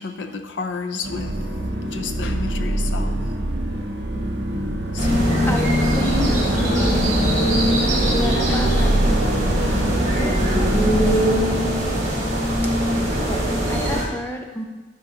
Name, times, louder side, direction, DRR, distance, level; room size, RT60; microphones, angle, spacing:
voice 1, 0.0-1.4 1.9-3.2 4.9-5.6 6.3-6.4 6.8-6.9 8.5-8.6, left 4 dB, 75° left, 8 dB, 0.5 m, -31 dB
sound 1, 1.0-11.2, right 1 dB, 65° right, 0.7 m, -25 dB
sound 2, 5.0-14.0, equal, 40° right, 1.7 m, -21 dB
voice 2, 5.5-7.2 8.1-9.3 9.6-11.6 13.3-14.6, left 1 dB, 10° left, 3 dB, 0.5 m, -31 dB
10.5 x 3.8 x 2.8 m, 1.2 s
head